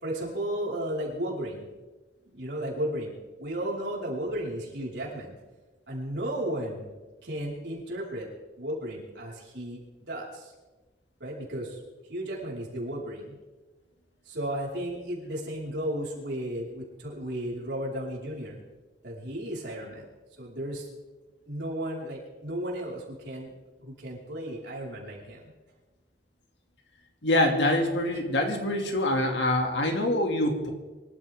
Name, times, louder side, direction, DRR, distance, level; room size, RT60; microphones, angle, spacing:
voice 1, 0.0-1.7 2.3-3.1 3.4-5.3 5.9-6.9 7.2-8.3 8.6-10.5 11.2-11.8 12.1-13.4 14.2-18.6 19.0-20.1 20.4-20.9 21.5-23.5 23.8-25.5, right 1 dB, 70° right, -4 dB, 5.1 m, -34 dB
voice 2, 27.2-30.7, left 1 dB, 80° left, 3 dB, 2.6 m, -25 dB
24.5 x 13.5 x 3.7 m, 1.2 s
head